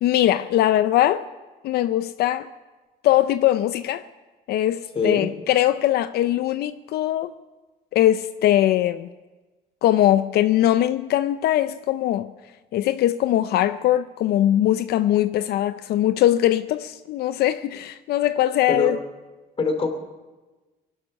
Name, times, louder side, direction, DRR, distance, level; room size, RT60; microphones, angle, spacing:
voice 1, 0.0-1.2 1.6-2.5 3.0-4.0 4.5-7.3 7.9-9.1 9.8-12.3 12.7-19.0, left 13 dB, 70° left, 0.6 m, -21 dB
voice 2, 4.9-5.3 18.7-18.9 19.6-19.9, left 3 dB, 35° left, 2.8 m, -23 dB
22.0 x 12.0 x 5.4 m
cardioid pair, 110°, 17 cm